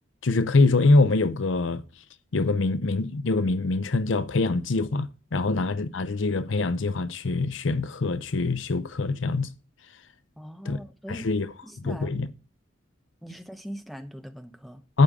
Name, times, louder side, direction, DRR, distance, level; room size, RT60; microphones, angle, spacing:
voice 1, 0.2-1.8 2.3-9.5 10.6-10.8 11.1-11.5 11.8-12.3 14.9-15.0, left 3 dB, 70° left, 0.7 m, -24 dB
voice 2, 10.4-11.3 11.6-12.3 13.2-14.9, equal, ahead, 0.9 m, -41 dB
12.0 x 8.4 x 3.7 m
head